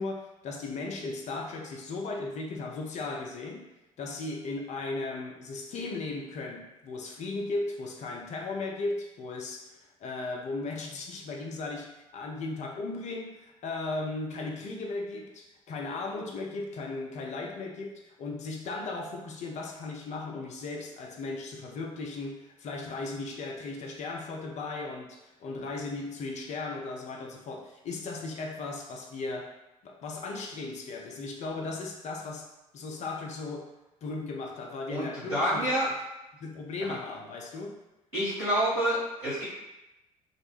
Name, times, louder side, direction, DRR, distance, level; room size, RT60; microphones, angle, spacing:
voice 1, 0.0-3.7 4.0-29.5 29.8-32.5 32.7-33.7 34.0-35.8 36.4-37.8, left 3 dB, 40° left, 0 dB, 0.5 m, -36 dB
voice 2, 34.9-35.9 38.1-39.4, right 1 dB, 90° right, -15 dB, 1.0 m, -28 dB
2.3 x 2.1 x 3.0 m, 0.98 s
figure-of-eight pair, 50°, 18 cm